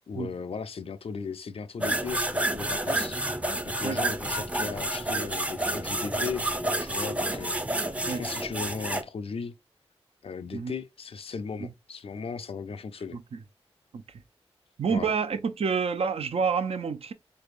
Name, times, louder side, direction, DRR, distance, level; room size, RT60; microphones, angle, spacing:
voice 1, 0.1-3.2 3.6-9.6 10.2-13.2 14.9-15.1, left 5 dB, 60° left, 0.4 m, -37 dB
sound 1, 1.8-9.0, right 1 dB, 10° right, 0.5 m, -29 dB
voice 2, 14.8-17.1, right 5 dB, 65° right, 0.5 m, -28 dB
3.4 x 3.3 x 2.5 m
cardioid pair, 40°, 11 cm